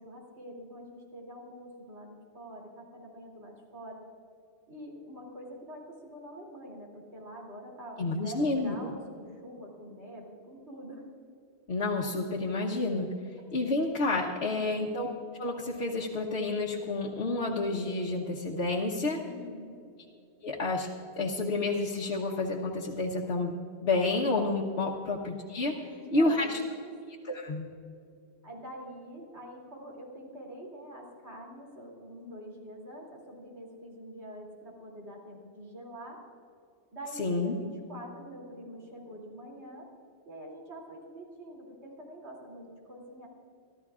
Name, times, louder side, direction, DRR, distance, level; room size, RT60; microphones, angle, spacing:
voice 1, 0.0-4.0 4.7-11.1 14.4-14.7 19.2-19.8 25.8-26.9 28.4-36.2 36.9-39.9 40.3-43.3, equal, 75° right, -2 dB, 3.3 m, -45 dB
voice 2, 8.0-8.7 11.7-13.1 13.5-15.1 15.4-19.2 20.4-20.9 21.2-23.5 23.8-25.7 26.1-26.6 27.3-27.7 37.2-37.5, left 2 dB, 70° left, -3 dB, 1.3 m, -29 dB
26.5 x 13.0 x 2.5 m, 2.5 s
omnidirectional pair, 1.1 m